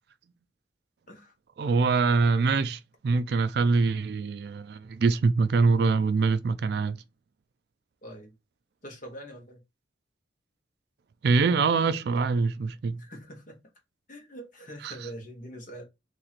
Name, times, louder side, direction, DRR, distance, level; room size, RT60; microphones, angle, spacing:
voice 1, 1.6-7.0 11.2-13.0 14.8-14.9, right 4 dB, 55° right, 0.3 m, -24 dB
voice 2, 8.0-8.3 8.8-9.6 13.0-13.6 14.1-15.8, equal, 45° left, 1.2 m, -43 dB
3.0 x 2.9 x 4.0 m
head